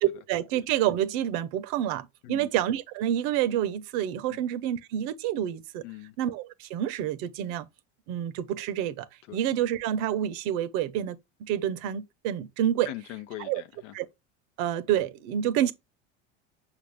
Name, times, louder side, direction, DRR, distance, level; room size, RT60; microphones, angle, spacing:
voice 1, 0.0-5.8 6.2-7.7 8.1-9.1 9.3-12.9 13.4-13.6 13.9-14.1 14.6-15.7, right 11 dB, 70° right, 0.7 m, -28 dB
voice 2, 5.8-6.1 9.3-9.4 12.9-13.9, left 14 dB, 80° left, 0.6 m, -40 dB
6.0 x 2.4 x 3.4 m
supercardioid pair, 100°, 36 cm